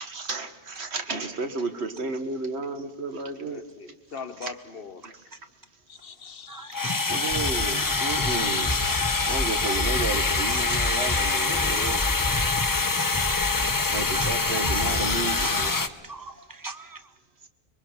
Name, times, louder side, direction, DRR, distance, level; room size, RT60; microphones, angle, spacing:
voice 1, 0.0-3.6 5.0-5.1 7.1-8.7 9.3-12.0 13.6-15.7, right 3 dB, 75° right, 7 dB, 1.7 m, -32 dB
voice 2, 3.4-5.0 5.9-6.9 11.5-12.0, left 5 dB, 60° left, 10 dB, 1.0 m, -41 dB
voice 3, 6.5-7.2 13.0-13.1 13.7-13.9 14.1-14.3 14.7-14.8 15.3-17.0, right 2 dB, 20° right, 10 dB, 1.0 m, -39 dB
sound 1, 6.7-15.9, left 3 dB, 25° left, 0.6 m, -25 dB
sound 2, 7.3-15.7, left 1 dB, 5° left, 2.2 m, -32 dB
26.0 x 22.0 x 5.9 m, 1.2 s
omnidirectional pair, 1.1 m